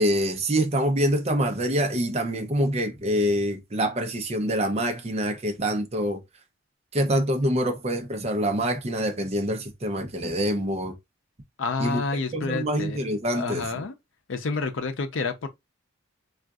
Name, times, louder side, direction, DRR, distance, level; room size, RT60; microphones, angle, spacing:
voice 1, 0.0-6.2 6.9-10.9 11.8-12.0 12.3-13.8, equal, 30° right, 0.6 m, -25 dB
voice 2, 11.6-13.0 13.3-13.9 14.3-15.5, left 4 dB, 70° left, 0.5 m, -29 dB
3.7 x 2.4 x 2.3 m
head